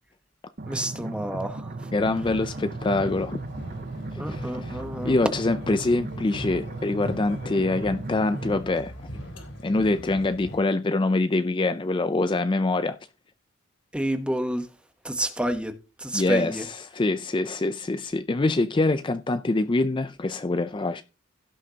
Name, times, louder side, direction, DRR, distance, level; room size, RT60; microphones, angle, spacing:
sound 1, 0.6-8.6, right 2 dB, 45° right, 0.7 m, -36 dB
voice 1, 0.7-1.9 4.2-5.1 13.9-14.7 15.0-16.6, right 1 dB, 5° right, 0.9 m, -29 dB
sound 2, 1.9-10.6, equal, 65° left, 3.8 m, -40 dB
voice 2, 1.9-3.4 4.1-8.9 9.6-13.0 16.1-21.0, left 2 dB, 25° left, 0.4 m, -25 dB
16.5 x 6.4 x 2.8 m
head